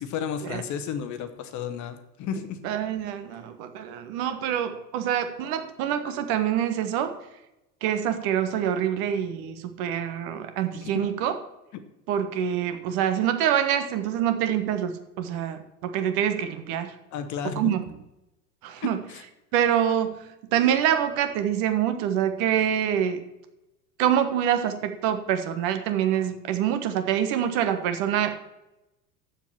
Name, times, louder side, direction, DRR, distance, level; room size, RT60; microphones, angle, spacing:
voice 1, 0.0-2.6 10.8-11.1 17.1-17.7 19.1-19.2, left 7 dB, 35° left, 9 dB, 1.1 m, -32 dB
voice 2, 2.6-7.1 7.8-11.3 12.1-16.9 17.6-17.8 18.6-19.0 19.5-20.2 20.5-23.2 24.0-28.5, right 10 dB, 45° right, 8 dB, 1.3 m, -25 dB
7.6 x 7.2 x 7.0 m, 0.91 s
figure-of-eight pair, 80°, 50 cm